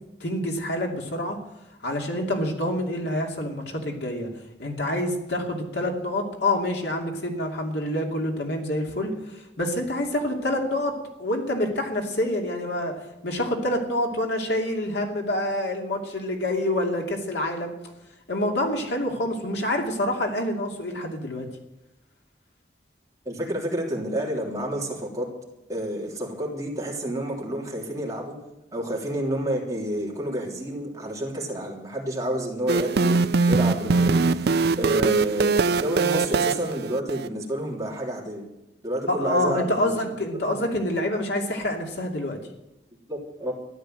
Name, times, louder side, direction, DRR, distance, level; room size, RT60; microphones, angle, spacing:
voice 1, 0.2-1.4 1.8-4.3 4.6-12.9 13.2-17.7 18.3-21.5 39.1-42.4, left 1 dB, 70° left, 1 dB, 2.7 m, -27 dB
voice 2, 23.2-25.3 25.7-28.3 28.7-33.2 33.5-34.2 34.8-38.4 38.8-40.5 43.1-43.5, right 1 dB, 20° right, -2 dB, 3.4 m, -29 dB
sound 1, 32.7-37.3, right 4 dB, 65° right, 0.5 m, -22 dB
13.5 x 11.5 x 7.7 m, 0.91 s
head